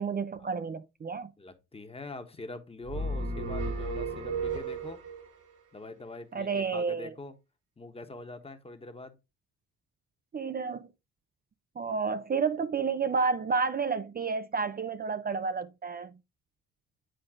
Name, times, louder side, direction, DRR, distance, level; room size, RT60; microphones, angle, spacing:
voice 1, 0.0-1.3 6.3-7.1 10.3-10.9 11.8-16.1, right 5 dB, 30° right, 0.5 m, -30 dB
voice 2, 1.4-5.0 5.7-7.3 7.8-9.1, left 2 dB, 20° left, 1.3 m, -43 dB
sound 1, 2.9-5.3, right 2 dB, 85° right, 2.7 m, -33 dB
9.2 x 3.7 x 3.8 m
cardioid pair, 90°, 30 cm